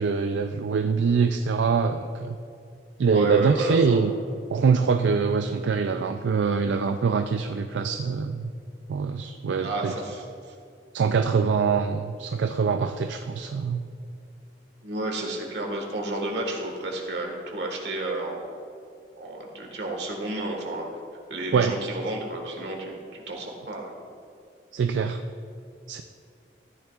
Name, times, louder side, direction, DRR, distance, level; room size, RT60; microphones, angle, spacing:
voice 1, 0.0-2.4 3.0-4.1 4.5-8.5 8.9-9.9 10.9-13.8 21.5-21.7 24.7-25.2 25.9-26.0, right 5 dB, 90° right, 7 dB, 0.4 m, -24 dB
voice 2, 3.1-4.0 9.6-10.2 14.8-18.5 19.2-20.9 21.3-23.9, right 2 dB, 70° right, 1 dB, 1.6 m, -31 dB
14.0 x 9.5 x 2.4 m, 2.4 s
head